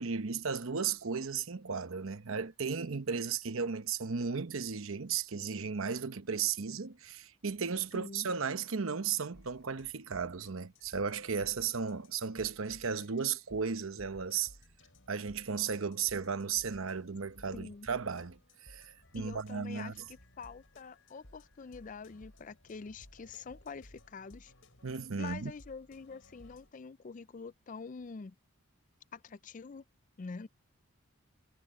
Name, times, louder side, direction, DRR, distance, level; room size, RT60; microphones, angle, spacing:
voice 1, 0.0-14.5 15.1-20.0 24.8-25.5, right 6 dB, 75° right, 0.9 m, -35 dB
voice 2, 7.9-8.3 17.5-17.9 19.2-24.5 25.2-28.3 29.1-29.8 30.2-30.5, left 4 dB, 35° left, 0.4 m, -46 dB
sound 1, 9.3-26.7, left 1 dB, 65° left, 5.5 m, -59 dB
head